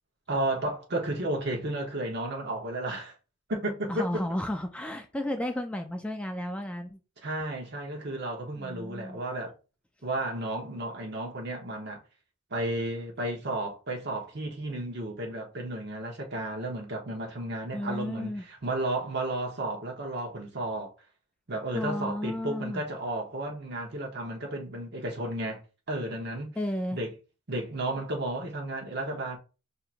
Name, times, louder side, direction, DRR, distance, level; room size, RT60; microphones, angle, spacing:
voice 1, 0.3-3.1 3.5-4.2 7.2-9.5 10.0-12.0 12.5-20.9 21.5-25.6 25.9-26.6 26.9-27.1 27.5-29.4, right 1 dB, 55° right, 1.0 m, -33 dB
voice 2, 3.9-7.0 8.6-9.2 17.7-18.4 21.7-22.8 26.6-27.0, left 1 dB, 5° left, 0.3 m, -33 dB
5.7 x 2.8 x 2.5 m
head